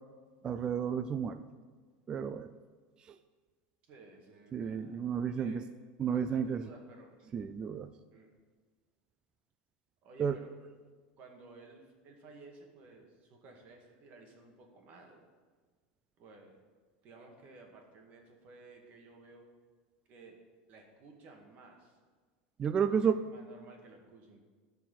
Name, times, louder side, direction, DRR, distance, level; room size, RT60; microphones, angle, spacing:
voice 1, 0.4-1.4 2.1-2.5 3.1-3.2 4.5-5.6 6.0-6.6 7.3-7.9 10.2-10.4 22.6-23.2, right 7 dB, 20° right, 11 dB, 0.3 m, -31 dB
voice 2, 3.9-5.0 5.4-5.6 6.1-7.1 8.1-8.3 10.0-10.5 11.2-15.3 16.2-16.6 17.0-19.4 20.1-20.3 20.7-22.0 22.8-24.4, right 3 dB, 40° right, 2 dB, 1.9 m, -55 dB
12.0 x 4.7 x 7.7 m, 1.4 s
supercardioid pair, 155°, 4 cm